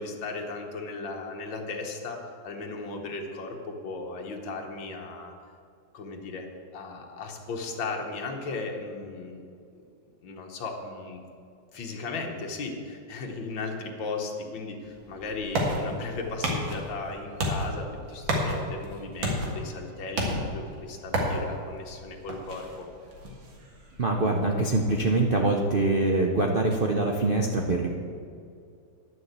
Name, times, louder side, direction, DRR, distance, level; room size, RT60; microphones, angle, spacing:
voice 1, 0.0-5.3 5.9-9.5 10.2-11.2 11.7-22.9, left 3 dB, 85° left, 1 dB, 2.0 m, -36 dB
sound 1, 14.8-26.3, equal, 90° right, 2.5 m, -33 dB
voice 2, 24.0-27.9, right 2 dB, 55° right, 1 dB, 0.5 m, -24 dB
10.5 x 6.4 x 8.1 m, 2.4 s
omnidirectional pair, 2.0 m